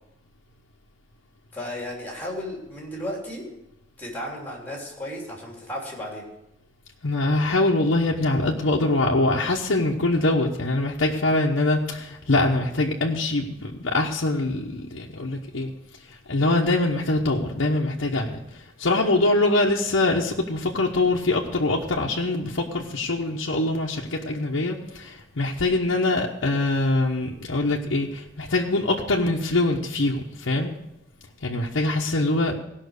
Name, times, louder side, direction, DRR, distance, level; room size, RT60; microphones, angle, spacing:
voice 1, 1.5-3.5 4.0-6.3, left 1 dB, 10° left, -2 dB, 3.3 m, -34 dB
voice 2, 7.0-15.7 16.0-30.7 31.4-32.5, left 2 dB, 85° left, -2 dB, 1.0 m, -23 dB
16.5 x 5.9 x 6.6 m, 0.87 s
head